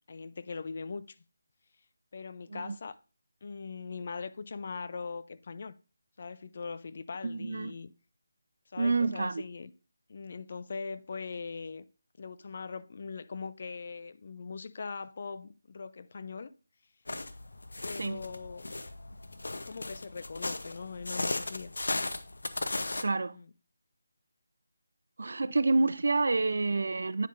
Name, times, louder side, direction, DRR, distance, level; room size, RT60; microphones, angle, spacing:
voice 1, 0.1-1.2 2.1-3.0 3.4-5.7 6.2-7.9 8.7-9.7 10.1-11.8 12.2-16.5 17.8-18.7 19.5-21.7 23.3-23.5, left 4 dB, 45° left, 0.4 m, -41 dB
voice 2, 7.2-7.7 8.8-9.4 18.0-18.2 23.0-23.4 25.2-27.3, right 3 dB, 65° right, 0.5 m, -28 dB
sound 1, 17.1-23.0, left 2 dB, 80° left, 0.7 m, -36 dB
9.2 x 5.4 x 2.5 m
figure-of-eight pair, 165°, 0 cm